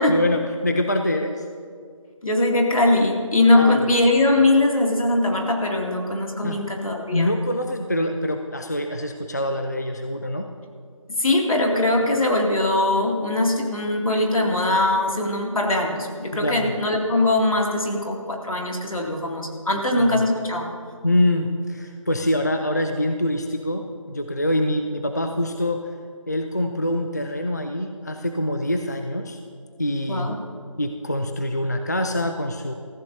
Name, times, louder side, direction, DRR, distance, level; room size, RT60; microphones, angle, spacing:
voice 1, 0.1-1.4 3.6-3.8 6.4-6.6 7.1-10.5 16.3-16.7 19.9-20.3 21.0-25.9 26.3-29.4 29.8-30.3 30.8-32.7, left 1 dB, 30° left, 5 dB, 0.4 m, -25 dB
voice 2, 2.2-7.3 11.2-20.7 30.1-30.3, left 2 dB, 80° left, 0 dB, 2.4 m, -21 dB
17.5 x 14.5 x 2.7 m, 2.1 s
figure-of-eight pair, 175°, 17 cm